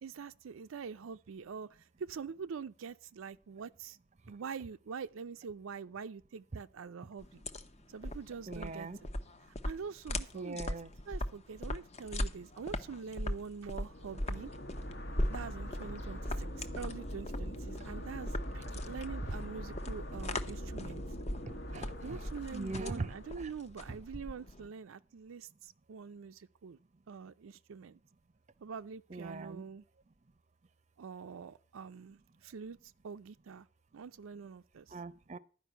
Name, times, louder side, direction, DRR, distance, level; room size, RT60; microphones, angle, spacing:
voice 1, 0.0-1.7 2.0-4.0 4.3-7.4 7.9-8.9 9.6-10.6 11.1-14.5 15.3-21.0 22.0-26.8 27.1-28.0 28.6-29.8 31.0-32.8 33.0-33.7 33.9-35.0, right 6 dB, 80° right, 0.4 m, -45 dB
sound 1, 7.2-24.7, left 1 dB, 30° left, 0.8 m, -39 dB
voice 2, 8.5-9.0 10.3-10.9 21.4-22.2 22.5-23.5 23.9-24.0 29.1-29.6 34.9-35.4, right 3 dB, 35° right, 0.6 m, -41 dB
sound 2, 13.8-23.6, equal, 60° left, 1.3 m, -42 dB
12.0 x 5.2 x 7.9 m
head